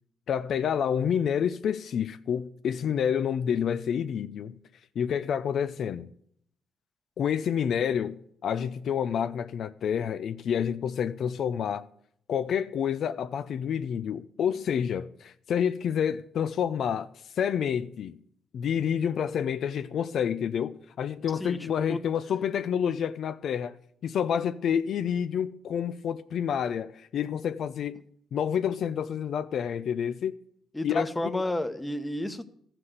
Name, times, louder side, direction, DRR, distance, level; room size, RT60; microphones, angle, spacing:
voice 1, 0.3-4.5 5.0-6.1 7.2-11.9 12.3-18.2 18.5-23.8 24.0-28.0 28.3-30.4 30.8-31.4, left 8 dB, 65° left, 0.5 m, -28 dB
voice 2, 30.7-32.5, left 1 dB, 10° left, 1.0 m, -31 dB
13.5 x 5.9 x 7.8 m
cardioid pair, 90°, 0 cm